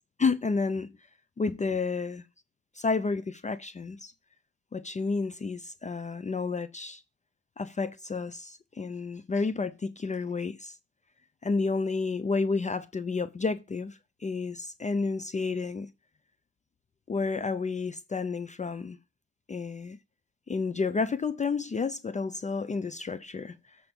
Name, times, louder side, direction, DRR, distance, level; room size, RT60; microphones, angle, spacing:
voice 1, 0.2-0.9 1.4-2.2 2.7-4.1 4.7-7.0 7.6-10.8 11.4-15.9 17.1-19.0 19.5-20.0 20.5-23.8, left 4 dB, 25° left, 0.5 m, -31 dB
7.7 x 4.6 x 5.3 m
cardioid pair, 90°, 30 cm